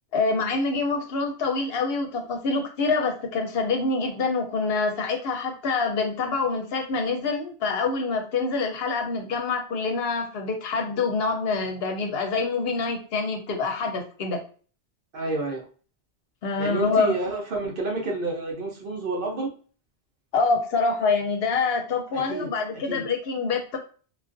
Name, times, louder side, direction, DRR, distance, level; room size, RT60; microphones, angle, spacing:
voice 1, 0.1-14.4 16.4-17.1 20.3-23.8, left 4 dB, 65° left, 3 dB, 0.7 m, -26 dB
voice 2, 15.1-15.6 16.6-19.5 22.1-22.5 22.9-23.0, right 2 dB, 55° right, 0 dB, 0.8 m, -29 dB
2.3 x 2.2 x 2.5 m, 0.39 s
omnidirectional pair, 1.1 m